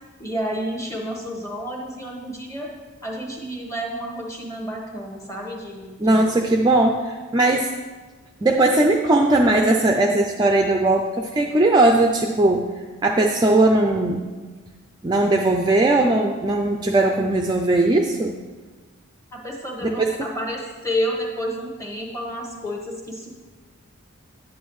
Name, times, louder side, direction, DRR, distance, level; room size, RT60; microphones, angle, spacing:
voice 1, 0.2-2.7 3.0-6.3 19.3-23.3, equal, 15° left, -1 dB, 1.2 m, -30 dB
voice 2, 6.0-7.7 8.4-12.7 13.0-14.3 15.0-18.4 19.8-20.1, right 2 dB, 20° right, 2 dB, 0.4 m, -19 dB
9.1 x 8.3 x 3.1 m, 1.3 s
head